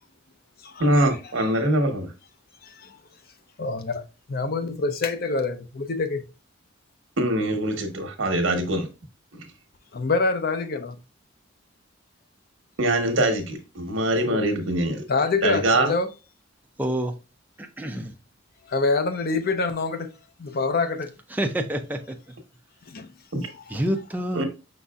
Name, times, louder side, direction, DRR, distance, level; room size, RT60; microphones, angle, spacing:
voice 1, 0.8-2.1 7.2-8.9 9.3-9.4 12.8-15.0 15.4-15.9 23.3-23.4 24.3-24.4, right 1 dB, 75° right, 1.1 m, -23 dB
voice 2, 3.6-6.2 9.9-11.0 14.3-14.5 15.1-16.1 18.7-20.1 20.4-21.1 22.9-23.1 23.5-23.8, left 3 dB, 50° left, 0.6 m, -26 dB
voice 3, 16.8-17.1 17.6-18.1 21.3-22.2 23.7-24.4, right 1 dB, 10° right, 0.5 m, -27 dB
5.3 x 4.0 x 2.3 m
head